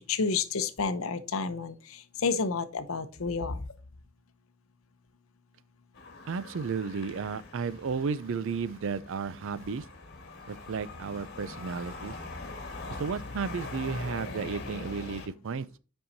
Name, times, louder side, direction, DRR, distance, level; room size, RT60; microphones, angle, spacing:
voice 1, 0.1-1.7 2.2-3.6, left 4 dB, 70° left, 0.7 m, -29 dB
sound 1, 5.9-15.3, left 2 dB, 50° left, 1.7 m, -42 dB
voice 2, 6.3-9.8 10.5-12.2 13.0-15.8, right 5 dB, 60° right, 0.4 m, -33 dB
8.6 x 5.5 x 2.7 m
head